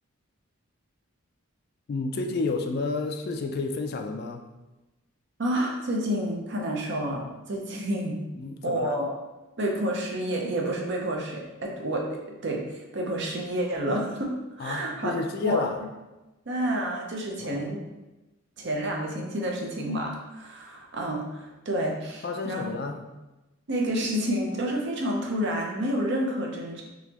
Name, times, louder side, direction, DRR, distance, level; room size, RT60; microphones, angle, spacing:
voice 1, 1.9-4.4 8.4-9.0 14.6-15.8 17.4-17.6 22.2-23.0, left 3 dB, 45° left, 4 dB, 0.3 m, -30 dB
voice 2, 5.4-8.2 8.6-9.2 9.6-15.1 15.4-15.6 16.5-17.8 18.6-22.6 23.7-26.8, right 1 dB, 55° right, 0 dB, 0.6 m, -29 dB
3.9 x 2.9 x 2.9 m, 1.0 s
head